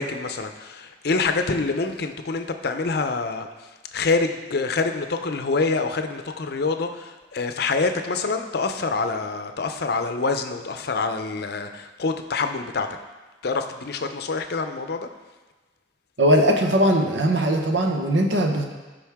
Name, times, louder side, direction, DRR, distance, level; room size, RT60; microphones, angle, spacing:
voice 1, 0.0-12.9 13.4-15.1, left 4 dB, 55° left, 7 dB, 0.6 m, -26 dB
voice 2, 16.2-18.7, equal, 75° right, 3 dB, 1.0 m, -20 dB
13.5 x 5.2 x 3.6 m, 1.2 s
head